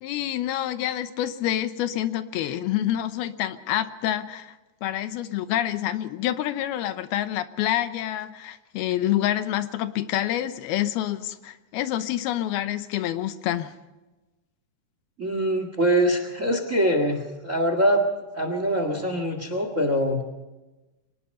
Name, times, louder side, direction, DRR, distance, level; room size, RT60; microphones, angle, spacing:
voice 1, 0.0-4.5 4.8-13.7, left 12 dB, 85° left, 11 dB, 2.9 m, -27 dB
voice 2, 15.2-18.0 18.3-20.2, equal, 30° right, 7 dB, 1.4 m, -23 dB
24.5 x 19.5 x 5.5 m, 1.1 s
omnidirectional pair, 4.4 m